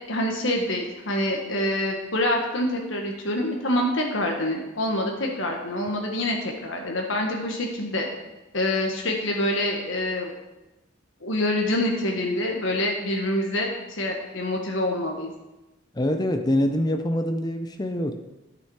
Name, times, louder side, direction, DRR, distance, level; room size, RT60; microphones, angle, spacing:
voice 1, 0.1-8.1 8.5-10.3 11.2-15.3, left 1 dB, 70° left, 1 dB, 1.4 m, -26 dB
voice 2, 15.9-18.2, left 1 dB, 20° left, 6 dB, 0.6 m, -24 dB
11.5 x 6.9 x 4.8 m, 1.0 s
head